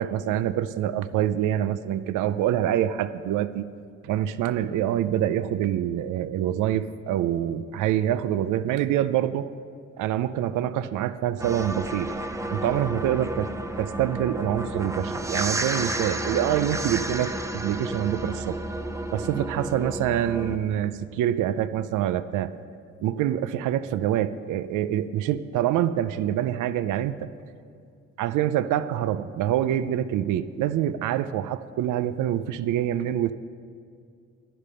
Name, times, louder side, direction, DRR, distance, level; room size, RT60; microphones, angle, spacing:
voice 1, 0.0-3.7 4.0-9.5 10.0-12.1 12.5-13.5 13.8-18.6 19.1-22.5 23.0-27.3 28.2-33.3, right 11 dB, 85° right, 14 dB, 0.5 m, -26 dB
sound 1, 11.4-20.6, right 1 dB, 10° right, 0.7 m, -31 dB
11.0 x 10.0 x 5.6 m, 2.3 s
cardioid pair, 90°, 30 cm